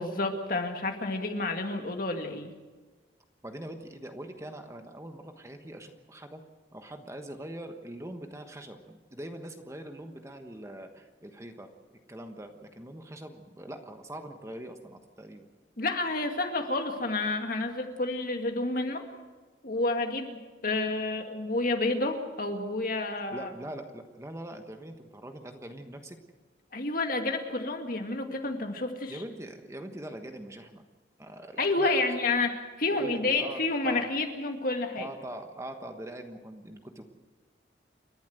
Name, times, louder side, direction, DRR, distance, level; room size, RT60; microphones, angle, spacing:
voice 1, 0.0-2.5 15.8-19.1 19.6-23.5 26.7-29.2 31.6-35.1, left 2 dB, 50° left, 4 dB, 2.1 m, -30 dB
voice 2, 3.4-6.4 6.7-11.7 12.1-15.5 23.3-26.2 29.1-30.8 31.2-32.0 32.9-34.0 35.0-37.0, right 1 dB, 15° right, 6 dB, 1.2 m, -42 dB
29.0 x 11.5 x 7.9 m, 1.3 s
head